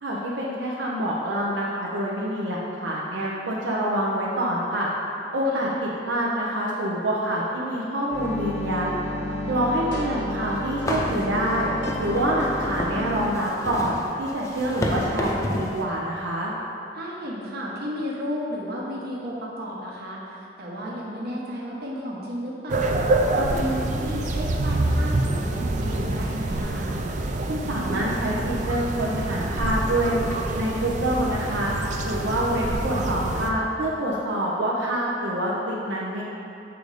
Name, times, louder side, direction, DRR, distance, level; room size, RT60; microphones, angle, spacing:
voice 1, 0.0-4.9 5.3-9.0 9.5-11.7 12.0-16.5 27.5-30.2 30.5-31.7 32.0-36.2, right 1 dB, 90° right, -5 dB, 0.8 m, -26 dB
sound 1, 8.1-13.3, left 1 dB, 75° left, 1.1 m, -31 dB
voice 2, 9.4-9.8 16.9-23.0 23.3-27.0, equal, 60° right, -4 dB, 1.2 m, -33 dB
sound 2, 10.3-10.4 10.8-15.8, left 1 dB, 20° left, 0.6 m, -30 dB
sound 3, 22.7-33.5, right 2 dB, 45° right, 0.5 m, -26 dB
7.0 x 3.9 x 4.9 m, 2.7 s
head